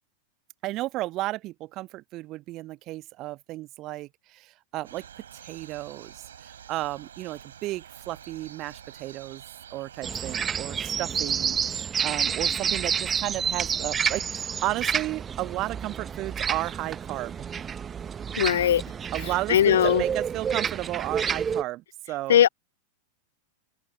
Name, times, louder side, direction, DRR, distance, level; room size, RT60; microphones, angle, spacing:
voice 1, 0.6-5.0 5.4-6.1 6.7-9.4 9.7-17.5 19.1-22.4, right 17 dB, 35° right, 1.4 m, -33 dB
sound 1, 4.8-10.4, right 9 dB, 65° right, 7.3 m, -47 dB
sound 2, 10.0-21.6, right 7 dB, 20° right, 1.0 m, -29 dB
voice 2, 18.4-18.8 19.5-20.0 22.3-22.5, left 10 dB, 60° left, 0.5 m, -19 dB
open air
figure-of-eight pair, 90°, 0 cm